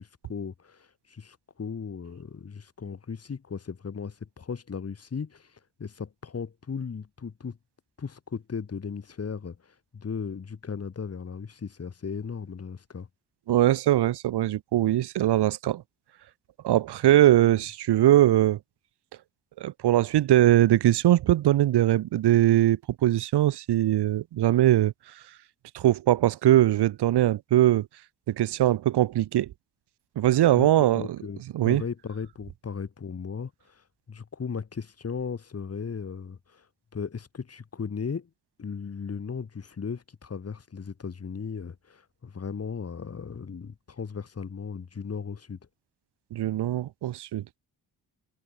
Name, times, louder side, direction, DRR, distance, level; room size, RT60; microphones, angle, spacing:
voice 1, 0.0-5.5 5.8-7.6 8.0-9.6 9.9-13.1 30.6-36.6 36.9-38.3 38.6-45.6, left 6 dB, 40° left, 3.0 m, -36 dB
voice 2, 13.5-15.8 16.6-18.6 19.6-24.9 25.7-27.9 28.3-29.5 30.2-31.0 31.5-31.8 46.3-47.4, right 13 dB, 80° right, 1.1 m, -21 dB
cardioid pair, 110°, 40 cm